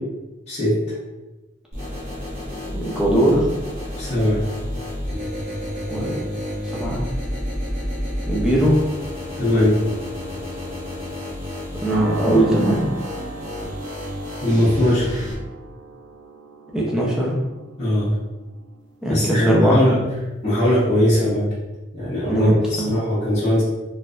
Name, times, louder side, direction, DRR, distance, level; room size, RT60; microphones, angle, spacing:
voice 1, 0.5-0.8 3.9-4.4 9.4-9.8 14.4-15.3 17.8-18.1 19.1-20.0 20.4-21.5 21.9-23.6, left 1 dB, 35° left, -11 dB, 1.1 m, -20 dB
sound 1, 1.7-15.3, left 1 dB, 35° right, 1.0 m, -30 dB
voice 2, 2.7-3.5 5.9-6.2 6.8-7.0 8.3-8.7 11.8-12.9 16.7-17.4 19.0-19.8 22.3-22.9, right 1 dB, 5° right, -5 dB, 0.6 m, -19 dB
sound 2, 11.9-20.4, right 3 dB, 75° right, 1.0 m, -39 dB
3.9 x 2.6 x 2.5 m, 1.1 s
head